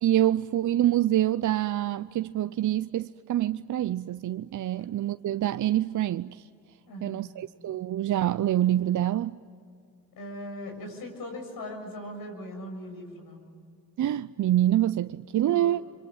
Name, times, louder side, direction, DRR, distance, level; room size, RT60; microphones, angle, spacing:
voice 1, 0.0-6.4 7.0-9.4 14.0-15.8, right 12 dB, 55° right, 0.6 m, -26 dB
voice 2, 6.9-7.4 10.2-13.4 15.4-15.8, left 1 dB, 70° left, 7.0 m, -40 dB
25.5 x 24.0 x 9.1 m
supercardioid pair, 60°, 36 cm